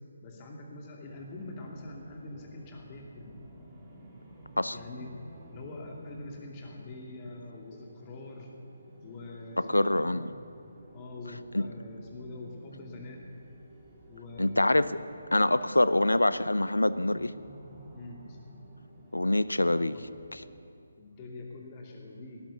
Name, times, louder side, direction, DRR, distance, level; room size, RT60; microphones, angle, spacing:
voice 1, 0.2-3.4 4.7-5.2 5.5-8.5 9.0-10.3 10.9-13.2 14.1-15.1 17.9-18.4 19.9-20.0 21.0-22.4, left 2 dB, 25° left, 0 dB, 2.4 m, -44 dB
sound 1, 1.1-20.7, right 1 dB, 15° right, 3.1 m, -52 dB
voice 2, 9.6-10.3 11.5-11.7 14.4-15.0 15.3-17.3 19.1-20.0 20.3-20.4, left 1 dB, 80° left, 15 dB, 0.6 m, -25 dB
17.5 x 11.5 x 6.9 m, 2.5 s
figure-of-eight pair, 145°, 0 cm